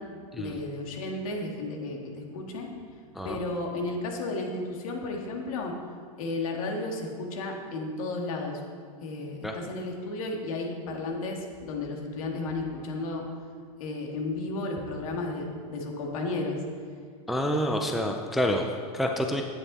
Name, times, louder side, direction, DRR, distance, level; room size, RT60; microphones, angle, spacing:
voice 1, 0.4-2.7 3.2-5.7 6.2-8.6 9.0-13.2 13.8-16.6 17.5-17.9, left 2 dB, 65° left, 1 dB, 2.1 m, -33 dB
voice 2, 17.3-19.4, equal, ahead, 2 dB, 0.4 m, -28 dB
11.0 x 9.3 x 4.2 m, 2.1 s
supercardioid pair, 155°, 19 cm